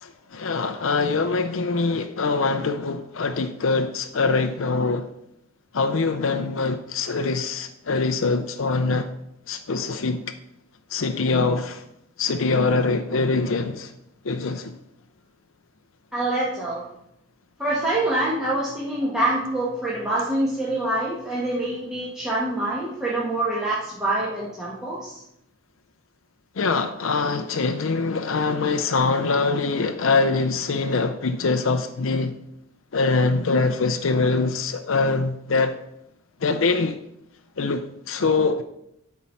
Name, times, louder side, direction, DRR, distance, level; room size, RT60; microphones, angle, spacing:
voice 1, 0.0-5.1 5.7-9.1 9.5-10.2 10.9-11.8 12.2-13.9 14.2-14.7 26.6-32.3 32.9-35.7 36.4-37.0 37.6-38.6, left 3 dB, 70° left, 0.6 m, -23 dB
voice 2, 16.1-16.8 17.6-25.2, right 1 dB, 5° right, 1.6 m, -25 dB
12.5 x 4.6 x 5.6 m
head